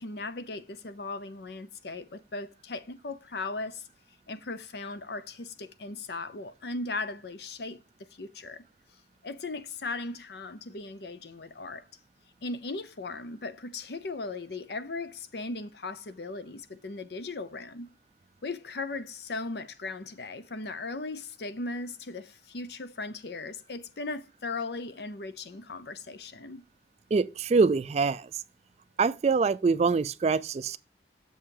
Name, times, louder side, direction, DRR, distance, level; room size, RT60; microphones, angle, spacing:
voice 1, 0.0-3.9 4.3-7.8 8.1-8.6 9.2-11.8 12.4-17.9 18.4-26.6, left 3 dB, 60° left, 0.6 m, -37 dB
voice 2, 27.1-28.3 29.0-30.8, right 4 dB, 35° right, 0.3 m, -24 dB
7.1 x 5.5 x 4.8 m
head